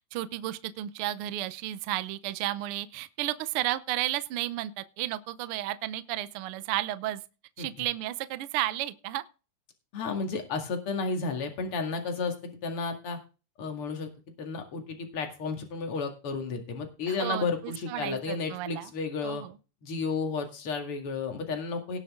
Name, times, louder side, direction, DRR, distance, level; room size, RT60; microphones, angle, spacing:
voice 1, 0.0-7.2 7.6-9.2 17.1-18.9 19.2-19.5, right 14 dB, 80° right, 1.2 m, -33 dB
voice 2, 9.9-13.2 13.6-14.1 14.4-19.5 19.8-22.0, left 4 dB, 50° left, 2.8 m, -32 dB
18.5 x 6.6 x 3.6 m
omnidirectional pair, 3.4 m